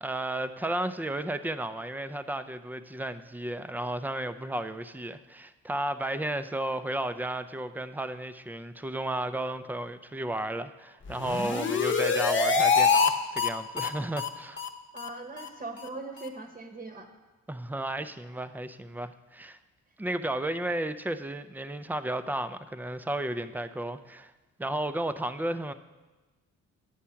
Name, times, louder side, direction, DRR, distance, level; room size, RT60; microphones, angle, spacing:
voice 1, 0.0-14.6 17.5-19.6 20.0-24.3 24.6-25.7, right 1 dB, 5° right, 11 dB, 0.4 m, -33 dB
sound 1, 11.1-13.1 13.4-13.5 13.8-13.9 14.2-14.3 14.6-14.7 15.0-15.1 15.4-15.5 15.8-15.9 16.2-16.3, left 5 dB, 40° left, 1.0 m, -25 dB
voice 2, 14.9-17.1, right 3 dB, 25° right, 5 dB, 1.0 m, -40 dB
9.9 x 7.3 x 5.7 m, 1.2 s
cardioid pair, 90°, 30 cm